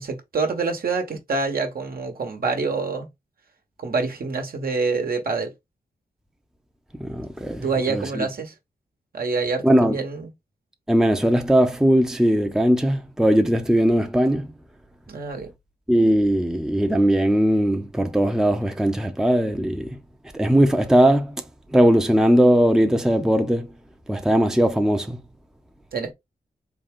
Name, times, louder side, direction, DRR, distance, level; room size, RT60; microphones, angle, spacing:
voice 1, 0.0-3.1 3.8-5.5 7.6-8.5 9.1-10.3 15.1-15.5 25.9-26.1, right 4 dB, 65° right, 1.1 m, -26 dB
voice 2, 7.0-8.3 9.6-10.0 10.9-14.5 15.9-19.9 20.3-21.4 21.7-23.7 24.1-25.2, equal, 5° right, 0.6 m, -19 dB
3.9 x 2.3 x 3.5 m
cardioid pair, 55°, 16 cm